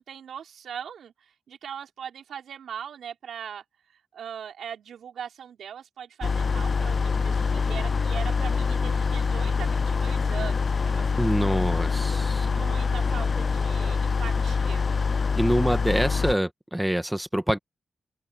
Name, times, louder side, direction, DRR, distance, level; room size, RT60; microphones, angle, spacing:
voice 1, 0.0-3.6 4.1-11.2 12.4-14.9, right 8 dB, 85° right, 4.8 m, -40 dB
sound 1, 6.2-16.3, left 5 dB, 40° left, 0.6 m, -25 dB
voice 2, 11.2-12.5 15.4-17.6, right 1 dB, 5° right, 1.8 m, -25 dB
open air
cardioid pair, 105°, 0 cm